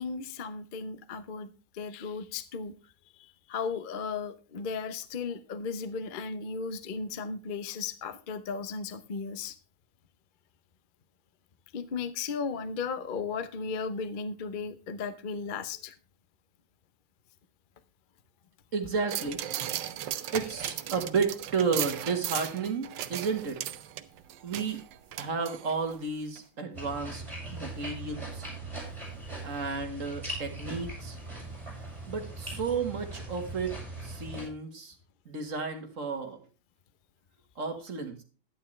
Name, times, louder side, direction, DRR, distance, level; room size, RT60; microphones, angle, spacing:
voice 1, 0.0-1.5 1.7-2.7 3.2-9.6 11.7-15.9 20.2-20.3, left 5 dB, 70° left, 12 dB, 0.4 m, -35 dB
voice 2, 18.7-19.4 20.3-23.6 24.4-24.8 25.2-27.2 27.5-28.5 29.4-31.2 32.1-35.0 35.3-36.4 37.6-38.2, right 5 dB, 40° right, 5 dB, 1.8 m, -32 dB
sound 1, 19.1-26.0 26.4-26.5, right 11 dB, 70° right, 1.3 m, -36 dB
sound 2, 26.7-34.5, right 2 dB, 15° right, 5.9 m, -40 dB
11.5 x 9.9 x 3.2 m, 0.35 s
omnidirectional pair, 2.2 m